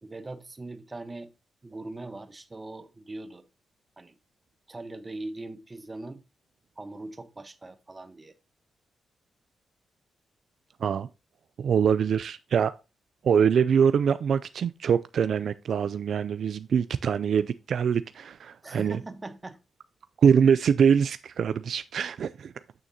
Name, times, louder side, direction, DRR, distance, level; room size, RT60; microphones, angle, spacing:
voice 1, 0.0-1.3 1.6-3.4 4.0-4.1 4.7-6.2 6.8-8.3 18.6-19.6, right 2 dB, 25° right, 1.0 m, -40 dB
voice 2, 11.6-12.7 13.2-19.0 20.2-22.5, right 7 dB, 70° right, 0.3 m, -24 dB
9.3 x 6.3 x 2.8 m
cardioid pair, 70°, 0 cm